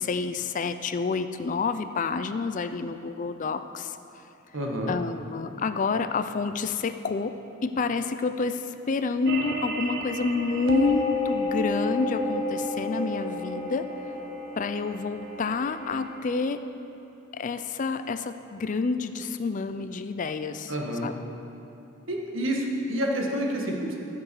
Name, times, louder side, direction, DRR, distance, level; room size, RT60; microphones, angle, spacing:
voice 1, 0.0-4.0 4.9-7.3 7.6-13.9 14.6-16.6 17.3-20.7 21.0-21.1, left 4 dB, 40° left, 10 dB, 0.4 m, -28 dB
voice 2, 4.5-4.9 20.7-21.1 22.1-24.0, right 1 dB, 65° right, 0 dB, 1.5 m, -28 dB
sound 1, 9.3-16.2, left 1 dB, 50° right, 1.0 m, -31 dB
14.5 x 6.0 x 6.9 m, 2.8 s
head